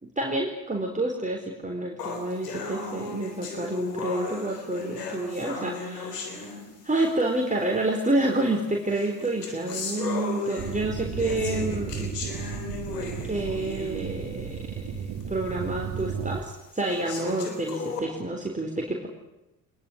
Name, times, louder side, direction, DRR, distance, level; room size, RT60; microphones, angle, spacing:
voice 1, 0.0-6.4 6.8-12.1 13.2-19.1, right 2 dB, 15° right, 0 dB, 4.1 m, -29 dB
sound 1, 2.0-7.1 8.0-8.1 8.9-14.1 14.6-14.7 15.2-15.3 16.0-16.1 16.8-18.0, left 4 dB, 85° left, 3.7 m, -36 dB
sound 2, 10.6-16.4, right 7 dB, 60° right, 2.4 m, -34 dB
23.5 x 21.0 x 9.9 m, 0.94 s
hypercardioid pair, 50°, 47 cm